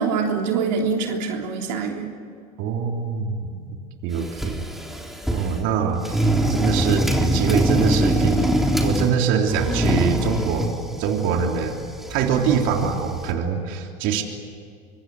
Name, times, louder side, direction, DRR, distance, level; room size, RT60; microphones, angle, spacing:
voice 1, 0.0-2.1, right 5 dB, 90° right, 1 dB, 3.4 m, -24 dB
voice 2, 2.6-3.7 4.0-4.6 5.3-6.2 6.5-8.6 8.8-10.7 11.0-11.8 12.1-14.2, right 7 dB, 65° right, 2 dB, 3.5 m, -24 dB
sound 1, 4.1-5.6 6.0-9.2 9.5-13.3, right 1 dB, ahead, 3.6 m, -24 dB
25.5 x 24.0 x 7.8 m, 2.3 s
supercardioid pair, 100°, 21 cm